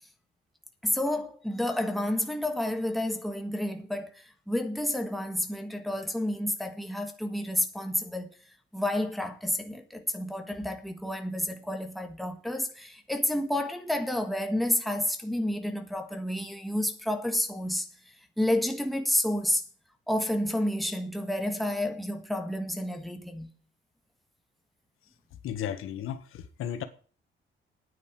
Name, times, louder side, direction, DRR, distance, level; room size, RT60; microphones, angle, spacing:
voice 1, 0.8-8.3 8.7-17.9 18.4-19.6 20.1-23.5, left 1 dB, ahead, 1.5 m, -30 dB
voice 2, 25.4-26.8, left 9 dB, 90° left, 1.6 m, -34 dB
9.6 x 9.6 x 6.1 m
cardioid pair, 155°, 21 cm